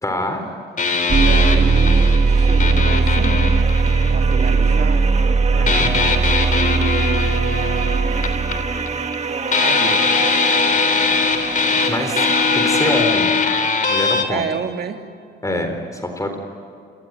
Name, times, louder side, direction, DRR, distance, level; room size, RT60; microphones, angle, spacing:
voice 1, 0.0-0.4 5.5-6.0 11.9-12.3 12.5-13.3 13.9-14.4 15.4-16.4, left 1 dB, 15° left, 5 dB, 4.0 m, -24 dB
sound 1, 0.8-4.6 5.7-9.2 9.5-14.2, left 5 dB, 40° left, 3.3 m, -21 dB
voice 2, 1.0-3.5 4.1-5.1 6.1-7.3 9.6-10.1 14.3-15.1, right 6 dB, 55° right, 5 dB, 2.4 m, -29 dB
sound 2, 1.1-13.0, right 4 dB, 35° right, 1.9 m, -19 dB
28.0 x 20.5 x 9.2 m, 2.3 s
cardioid pair, 90°, 20 cm